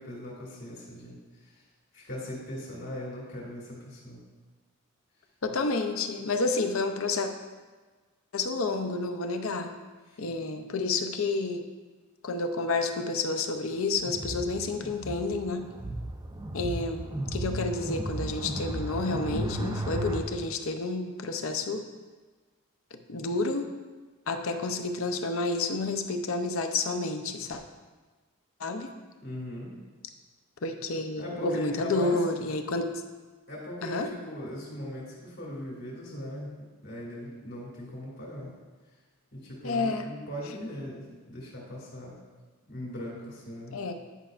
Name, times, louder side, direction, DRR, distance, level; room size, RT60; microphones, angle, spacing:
voice 1, 0.0-1.6 1.9-4.2 10.1-10.2 29.2-29.7 31.2-32.2 33.5-38.5 39.3-42.2 42.7-43.8, equal, 50° left, -6 dB, 2.1 m, -39 dB
voice 2, 5.4-7.3 8.3-9.7 10.2-11.6 12.2-15.7 16.5-21.8 22.9-23.7 24.3-27.6 28.6-28.9 30.6-32.9 33.8-34.1 39.6-40.1 43.7-43.9, left 3 dB, 65° left, 5 dB, 0.6 m, -30 dB
sound 1, 14.0-20.2, right 1 dB, 20° right, 0.4 m, -34 dB
10.0 x 5.6 x 2.5 m, 1.4 s
head